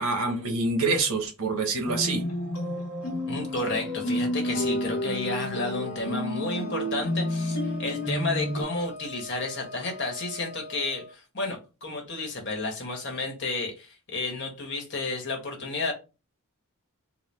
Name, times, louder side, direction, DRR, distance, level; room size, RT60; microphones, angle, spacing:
voice 1, 0.0-2.2, right 3 dB, 75° right, 4 dB, 1.0 m, -26 dB
sound 1, 1.8-8.6, left 1 dB, 85° left, 1.2 m, -30 dB
voice 2, 3.3-15.9, left 3 dB, 55° left, 2 dB, 1.2 m, -32 dB
Wind instrument woodwind instrument, 4.4-11.1, left 1 dB, 50° right, 1.5 m, -43 dB
4.0 x 2.1 x 3.3 m, 0.30 s
head